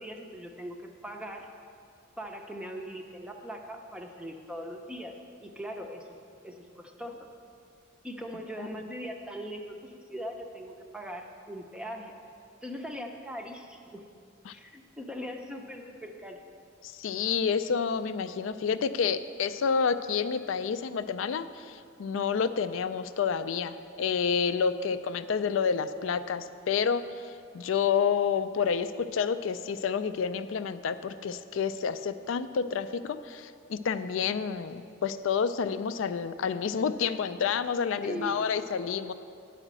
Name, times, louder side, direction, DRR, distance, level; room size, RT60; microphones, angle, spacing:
voice 1, 0.0-1.5 2.2-6.1 6.4-7.3 8.0-12.2 12.6-14.0 14.5-16.4 38.0-38.5, equal, 5° right, 2 dB, 0.5 m, -40 dB
voice 2, 16.8-39.1, left 6 dB, 75° left, 12 dB, 0.4 m, -29 dB
9.0 x 5.0 x 7.4 m, 2.4 s
head